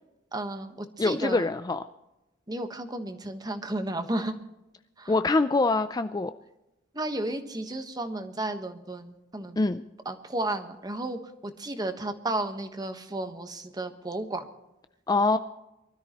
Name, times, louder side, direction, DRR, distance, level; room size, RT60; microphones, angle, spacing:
voice 1, 0.3-1.5 2.5-4.4 5.0-5.1 6.9-9.6 10.0-14.4, right 2 dB, 20° right, 7 dB, 1.2 m, -33 dB
voice 2, 1.0-1.8 5.1-6.3 9.6-9.8 15.1-15.4, left 3 dB, 20° left, 10 dB, 0.4 m, -24 dB
23.5 x 13.0 x 3.0 m, 0.95 s
head